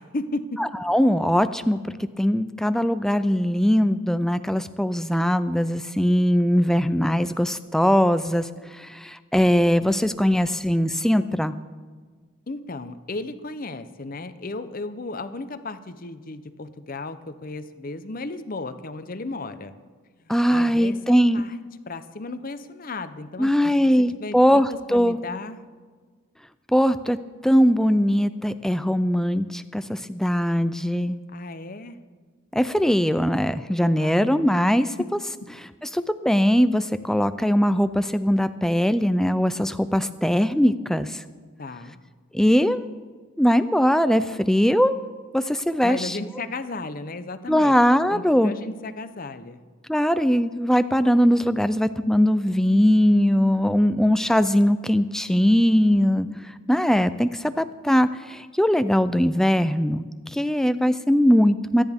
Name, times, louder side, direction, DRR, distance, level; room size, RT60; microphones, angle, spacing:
voice 1, 0.0-0.7 12.5-19.7 20.2-21.5 21.9-23.8 24.2-25.6 31.3-32.0 34.0-34.2 35.4-35.5 41.6-42.0 45.8-47.8 48.1-49.6, left 2 dB, 40° left, 11 dB, 0.7 m, -35 dB
voice 2, 0.6-11.6 20.3-21.4 23.4-25.2 26.7-27.2 27.4-31.2 32.5-34.9 35.9-41.2 42.3-42.9 43.4-45.0 45.3-46.2 47.5-48.5 49.9-61.8, equal, ahead, 12 dB, 0.3 m, -21 dB
24.5 x 10.0 x 3.6 m, 1.5 s
head